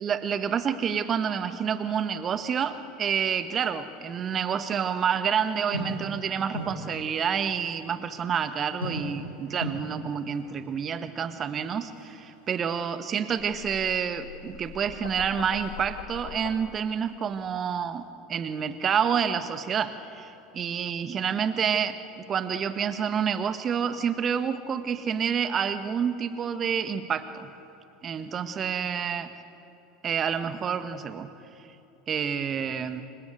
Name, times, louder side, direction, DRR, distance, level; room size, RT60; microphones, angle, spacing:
voice 1, 0.0-18.0 18.3-27.5 28.0-29.3 30.0-31.3 32.1-33.0, right 7 dB, 35° right, 11 dB, 1.6 m, -28 dB
sound 1, 2.2-5.0 5.5-7.5 7.8-7.9 8.1-13.9 14.4-17.0 17.2-17.8, equal, 90° left, 7.0 m, -40 dB
sound 2, 13.4-16.6, left 9 dB, 65° left, 1.5 m, -42 dB
28.0 x 24.5 x 8.2 m, 2.9 s
figure-of-eight pair, 75°, 0 cm